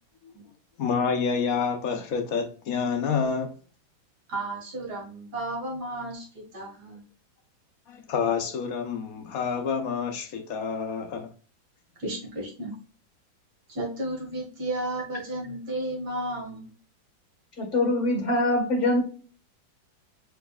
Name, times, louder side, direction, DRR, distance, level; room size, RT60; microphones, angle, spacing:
voice 1, 0.8-3.5 7.9-11.3, left 6 dB, 60° left, 1.0 m, -28 dB
voice 2, 4.3-7.0 12.0-12.7 13.7-16.7, right 1 dB, 55° right, 2.2 m, -33 dB
voice 3, 17.6-19.0, left 1 dB, 40° left, 1.7 m, -23 dB
4.9 x 4.5 x 2.3 m
omnidirectional pair, 2.1 m